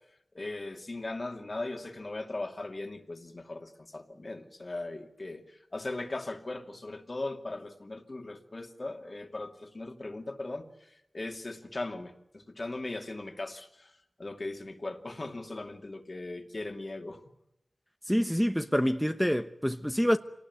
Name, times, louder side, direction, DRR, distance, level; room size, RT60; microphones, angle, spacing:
voice 1, 0.3-13.9 14.2-17.2, left 2 dB, 50° left, 2.6 m, -39 dB
voice 2, 18.1-20.2, equal, ahead, 1.1 m, -26 dB
26.0 x 19.0 x 9.6 m
cardioid pair, 40°, 0 cm